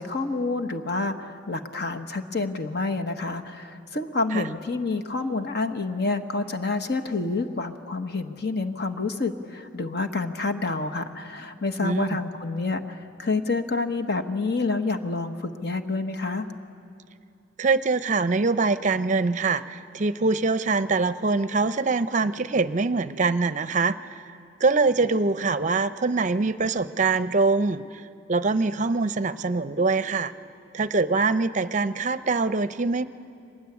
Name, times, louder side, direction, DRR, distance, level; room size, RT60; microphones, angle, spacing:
voice 1, 0.0-16.5, left 3 dB, 55° left, 8 dB, 1.2 m, -28 dB
voice 2, 11.8-12.2 17.6-24.2 24.6-27.8 28.3-30.3 30.7-33.0, right 3 dB, 40° right, 13 dB, 0.6 m, -24 dB
24.0 x 20.0 x 9.6 m, 2.5 s
head